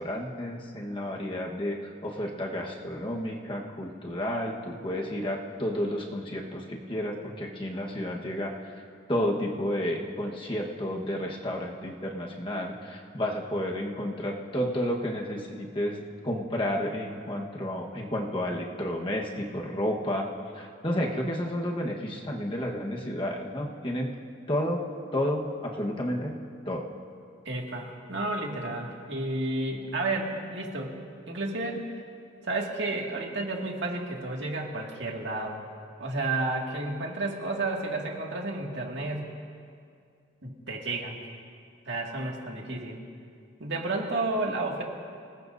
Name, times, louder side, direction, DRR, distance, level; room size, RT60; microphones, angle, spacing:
voice 1, 0.0-8.7 9.1-20.3 20.5-24.1 24.5-24.8 25.1-26.4 26.6-26.8, left 1 dB, 25° left, -1 dB, 1.3 m, -31 dB
voice 2, 27.5-30.9 31.3-31.9 32.4-35.6 36.0-39.3 40.4-41.2 41.9-43.0 43.6-44.8, right 2 dB, 70° right, -1 dB, 2.2 m, -31 dB
26.5 x 19.5 x 2.7 m, 2.3 s
head